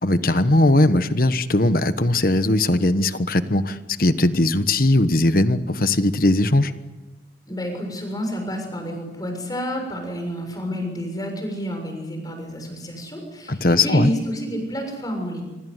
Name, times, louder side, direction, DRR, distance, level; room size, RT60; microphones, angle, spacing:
voice 1, 0.0-6.7 13.5-14.1, left 2 dB, 55° left, 11 dB, 1.3 m, -19 dB
voice 2, 7.5-15.4, equal, 20° left, 4 dB, 7.0 m, -29 dB
26.0 x 25.5 x 8.1 m, 1.1 s
head